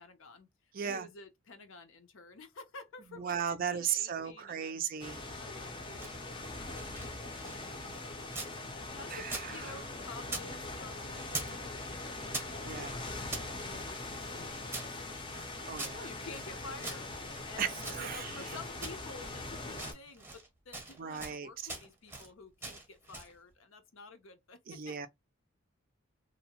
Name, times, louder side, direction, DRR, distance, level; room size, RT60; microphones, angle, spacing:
voice 1, 0.0-4.8 5.4-13.1 13.7-17.1 17.4-25.1, left 3 dB, 70° left, 0.6 m, -51 dB
voice 2, 0.7-1.1 3.1-5.2 9.1-9.7 12.6-13.0 15.7-16.1 17.6-18.6 21.0-21.5 24.7-25.1, right 8 dB, 40° right, 0.4 m, -36 dB
sound 1, 5.0-19.9, left 2 dB, 25° left, 0.5 m, -42 dB
sound 2, 5.7-8.6 8.9-10.5 10.7-11.6 11.9-13.5 14.0-16.5 16.8-18.5 18.8-19.4 19.7-20.5 20.7-21.4 21.7-22.3 22.6-23.4, right 3 dB, 10° right, 0.8 m, -44 dB
2.7 x 2.1 x 2.8 m
head